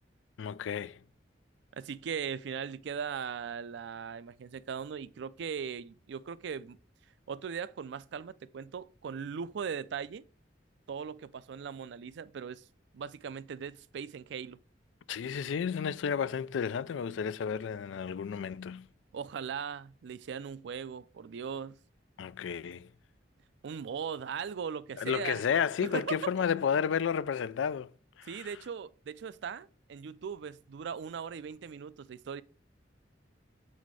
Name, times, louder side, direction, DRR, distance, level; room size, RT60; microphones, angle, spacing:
voice 1, 0.4-1.0 15.1-18.9 22.2-22.9 25.0-27.9 28.2-28.5, left 7 dB, 85° left, 0.4 m, -32 dB
voice 2, 1.8-6.8 7.3-10.2 10.9-12.6 12.9-14.6 19.1-21.8 23.6-25.4 25.8-26.1 28.3-32.4, right 7 dB, 65° right, 0.4 m, -39 dB
7.4 x 4.2 x 4.7 m
head